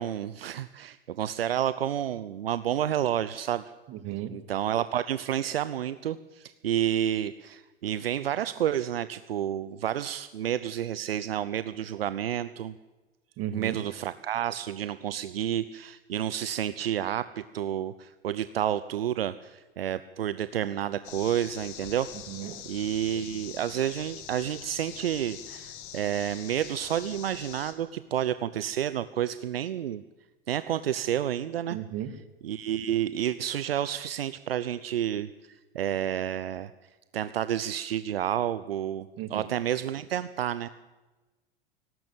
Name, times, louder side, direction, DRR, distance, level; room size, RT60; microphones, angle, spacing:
voice 1, 0.0-3.6 4.3-12.7 13.5-22.1 22.4-30.0 30.5-31.8 32.4-36.7 37.1-40.7, right 10 dB, 75° right, 15 dB, 0.8 m, -30 dB
voice 2, 3.9-4.3 13.4-13.8 22.3-22.5 31.7-32.1 39.2-39.5, right 12 dB, 45° right, 12 dB, 2.2 m, -35 dB
sound 1, 21.0-27.7, left 10 dB, 50° left, 2.8 m, -44 dB
18.5 x 17.0 x 8.9 m, 1.2 s
figure-of-eight pair, 85°, 30 cm